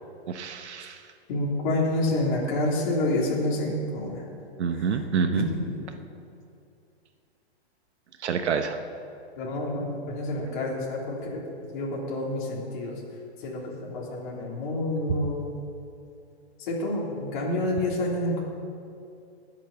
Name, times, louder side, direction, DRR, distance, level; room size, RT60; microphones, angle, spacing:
voice 1, 0.3-1.0 4.6-5.5 8.2-8.8 15.1-15.2, right 6 dB, 85° right, 6 dB, 1.1 m, -27 dB
voice 2, 1.3-4.2 5.3-5.7 9.4-11.4 11.7-12.9 13.4-15.4 16.7-18.4, left 1 dB, 45° left, -4 dB, 3.3 m, -28 dB
19.5 x 7.5 x 7.1 m, 2.5 s
hypercardioid pair, 160°, 33 cm